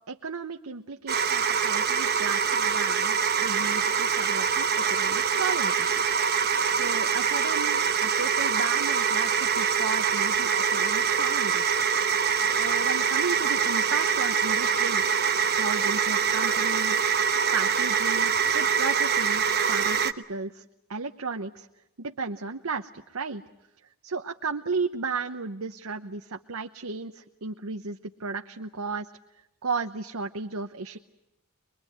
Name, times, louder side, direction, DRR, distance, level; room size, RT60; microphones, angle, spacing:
voice 1, 0.1-6.0 6.7-11.8 12.6-15.2 15.6-17.1 17.5-20.6 20.9-21.7 22.0-23.4 24.0-29.1 29.6-31.0, right 4 dB, 80° right, 5 dB, 0.9 m, -34 dB
sound 1, 1.1-20.1, right 6 dB, 50° right, 1.1 m, -24 dB
23.5 x 23.0 x 9.3 m, 0.89 s
head